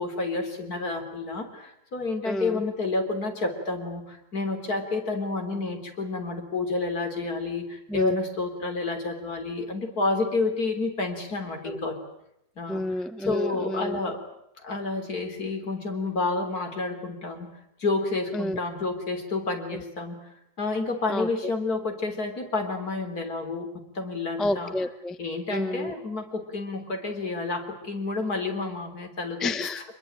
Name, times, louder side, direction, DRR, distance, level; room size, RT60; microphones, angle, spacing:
voice 1, 0.0-1.5 1.9-4.0 4.3-7.6 7.9-11.9 12.6-12.8 13.3-14.2 14.6-17.5 17.8-20.2 20.6-23.7 24.0-24.7 25.2-29.5, left 3 dB, 55° left, 4 dB, 4.1 m, -29 dB
voice 2, 2.2-2.6 7.9-8.2 11.6-11.8 12.7-14.0 18.3-18.6 19.7-19.8 21.1-21.5 24.4-25.2 25.5-25.9 29.4-29.8, left 1 dB, ahead, 11 dB, 0.6 m, -30 dB
25.5 x 22.0 x 9.0 m, 0.81 s
omnidirectional pair, 2.0 m